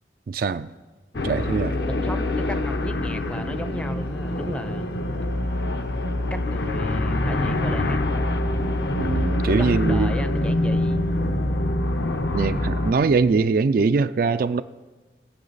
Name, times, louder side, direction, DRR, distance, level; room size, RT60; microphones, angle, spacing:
voice 1, 0.3-0.7 1.2-1.8 9.0-10.1 12.3-14.6, right 4 dB, 55° right, 0.3 m, -22 dB
sound 1, 1.1-12.9, left 1 dB, 70° left, 0.8 m, -25 dB
voice 2, 1.9-4.9 6.3-8.3 9.5-11.0, equal, 5° left, 0.5 m, -34 dB
20.5 x 7.7 x 4.1 m
head